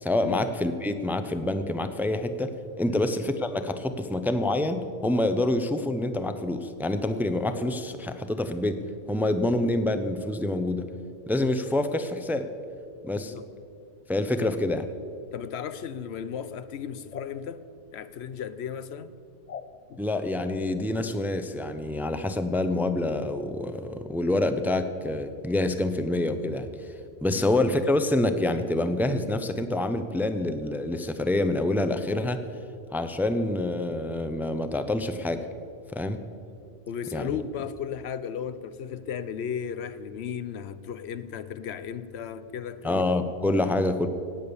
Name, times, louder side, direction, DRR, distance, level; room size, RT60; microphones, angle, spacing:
voice 1, 0.0-2.5 2.8-8.8 9.1-10.9 11.3-12.5 13.0-13.3 14.1-14.8 20.0-26.7 27.2-32.4 32.9-35.4 35.9-36.2 37.1-37.3 42.8-44.1, left 1 dB, ahead, 0.6 m, -27 dB
voice 2, 13.2-13.5 14.4-14.6 15.3-17.6 17.9-19.2 19.9-20.0 27.3-27.5 36.9-43.1, left 8 dB, 85° left, 0.9 m, -35 dB
sound 1, 17.1-17.3 19.5-19.7 20.5-20.6, left 7 dB, 50° left, 0.7 m, -40 dB
17.5 x 8.7 x 7.0 m
omnidirectional pair, 1.1 m